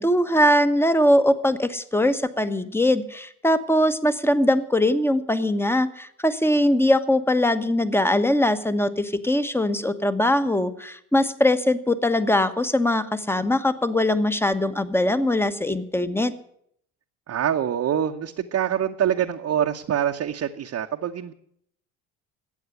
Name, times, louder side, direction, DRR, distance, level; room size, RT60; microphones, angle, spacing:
voice 1, 0.0-16.3, left 1 dB, 5° left, 12 dB, 1.1 m, -21 dB
voice 2, 17.3-21.3, right 9 dB, 40° right, 2 dB, 1.0 m, -25 dB
13.0 x 8.7 x 9.8 m, 0.69 s
hypercardioid pair, 70°, 39 cm